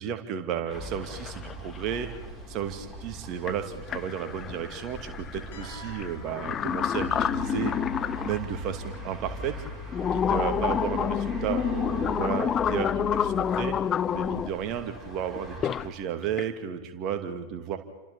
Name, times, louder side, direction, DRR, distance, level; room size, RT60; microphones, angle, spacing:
voice 1, 0.0-2.1 2.5-7.7 8.2-9.6 10.1-13.8 14.1-17.8, right 9 dB, 40° right, 7 dB, 2.6 m, -33 dB
sound 1, 0.7-0.8 1.0-1.8 3.5-3.6 3.9-8.4 8.9-9.0 9.7-14.5 15.4-15.9 16.2-16.5, left 9 dB, 25° left, 0.6 m, -28 dB
sound 2, 0.7-15.9, right 2 dB, ahead, 6.8 m, -40 dB
sound 3, 5.5-7.4, right 5 dB, 60° left, 6.8 m, -50 dB
29.5 x 27.5 x 4.2 m, 1.3 s
figure-of-eight pair, 90°, 0 cm